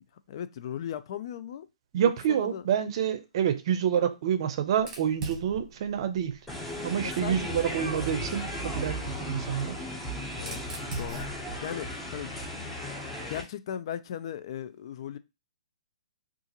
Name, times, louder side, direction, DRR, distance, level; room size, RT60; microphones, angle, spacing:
voice 1, 0.0-1.7 1.9-2.7 7.2-7.9 10.4-10.6 11.0-12.4 13.3-15.2, left 10 dB, 50° left, 0.3 m, -38 dB
voice 2, 1.9-6.4 6.8-9.8, right 9 dB, 45° right, 0.6 m, -28 dB
Fire, 4.7-7.5 8.6-12.9, right 3 dB, 20° right, 1.1 m, -44 dB
sound 1, 6.5-13.4, left 1 dB, 5° left, 0.7 m, -36 dB
3.6 x 2.4 x 2.9 m
hypercardioid pair, 140°, 4 cm